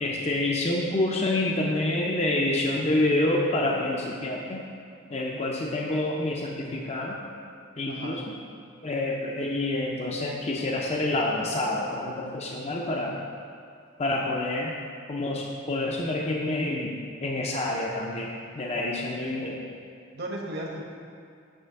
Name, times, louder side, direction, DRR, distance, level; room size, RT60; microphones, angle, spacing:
voice 1, 0.0-4.7 5.1-7.2 7.8-8.4 8.8-13.2 14.0-14.7 15.1-16.9 17.2-19.6, left 2 dB, 30° left, -2 dB, 0.6 m, -27 dB
voice 2, 5.3-5.7 7.9-8.2 20.1-20.8, right 1 dB, 55° right, 0 dB, 1.2 m, -36 dB
9.0 x 3.3 x 6.7 m, 2.3 s
head